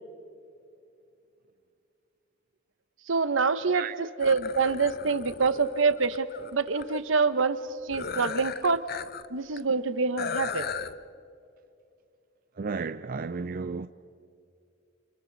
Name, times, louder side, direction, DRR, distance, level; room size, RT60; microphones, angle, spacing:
voice 1, 3.1-7.6 7.8-8.8 9.3-10.7, right 4 dB, 75° right, 1.0 m, -26 dB
sound 1, 4.2-7.0 7.9-9.3 9.6-9.7 10.2-10.9, left 6 dB, 50° left, 0.7 m, -36 dB
voice 2, 12.6-13.9, right 4 dB, 45° right, 0.4 m, -33 dB
29.0 x 28.5 x 4.0 m
head